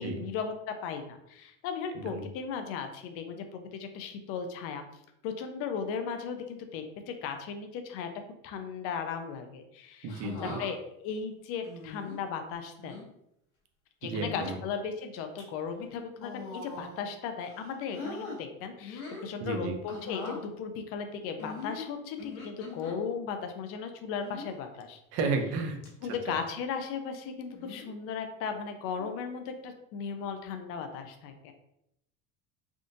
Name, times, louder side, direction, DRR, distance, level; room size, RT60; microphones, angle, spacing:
voice 1, 0.0-4.8 5.2-8.1 8.4-13.0 14.0-25.0 26.0-31.5, left 6 dB, 50° left, 7 dB, 0.5 m, -36 dB
voice 2, 10.0-10.6 14.0-14.6 19.4-19.8 25.1-25.8 26.3-26.4, right 4 dB, 55° right, 5 dB, 0.6 m, -32 dB
sound 1, 10.1-10.7 11.6-12.2 12.8-13.1 14.0-14.6 15.2-15.4 16.2-17.1 17.4-18.4 18.8-19.3 19.9-20.4 21.4-23.0 24.2-24.6 25.2-25.6 25.8-25.9 27.5-27.9 29.0-29.3, left 4 dB, 85° left, 1.0 m, -42 dB
3.6 x 2.6 x 2.5 m, 0.79 s
cardioid pair, 165°, 30 cm